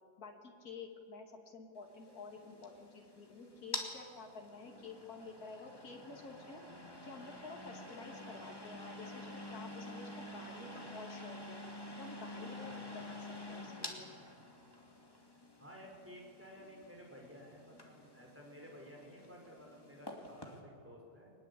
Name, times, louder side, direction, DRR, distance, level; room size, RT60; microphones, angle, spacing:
voice 1, 0.2-6.6 7.0-11.6 12.0-14.1, left 4 dB, 50° left, 2 dB, 2.7 m, -50 dB
sound 1, 1.9-20.6, left 1 dB, 10° left, 2.3 m, -49 dB
voice 2, 12.6-13.0 15.6-21.3, equal, 5° right, -1 dB, 5.0 m, -54 dB
23.0 x 20.5 x 8.3 m, 2.4 s
omnidirectional pair, 2.1 m